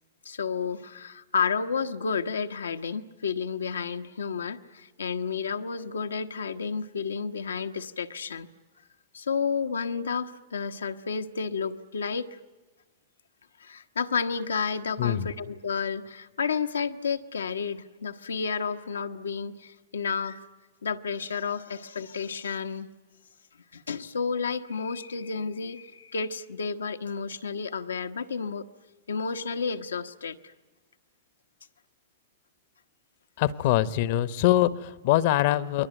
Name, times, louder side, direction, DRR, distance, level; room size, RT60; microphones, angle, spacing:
voice 1, 0.2-8.5 9.1-12.4 13.6-20.4 20.8-22.9 23.7-28.7 29.1-30.4, left 5 dB, 85° left, 7 dB, 1.2 m, -31 dB
voice 2, 15.0-15.3 33.4-35.9, left 14 dB, 55° left, 15 dB, 1.1 m, -23 dB
28.5 x 21.5 x 9.2 m, 1.2 s
hypercardioid pair, 105°, 0 cm